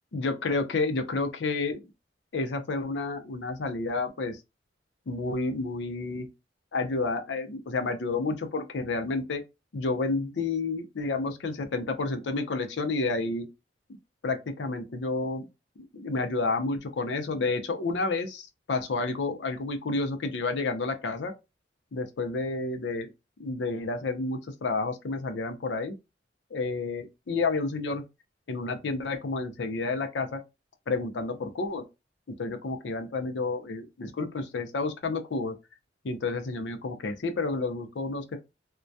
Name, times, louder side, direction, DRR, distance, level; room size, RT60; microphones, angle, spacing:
voice 1, 0.1-1.9 2.3-4.4 5.1-6.3 6.7-9.4 9.7-13.5 14.2-15.5 15.9-21.3 21.9-23.1 23.4-25.9 26.5-28.0 28.5-30.4 30.9-31.8 32.4-35.6 36.0-38.4, left 3 dB, 75° left, 0.5 m, -30 dB
2.2 x 2.1 x 2.6 m
head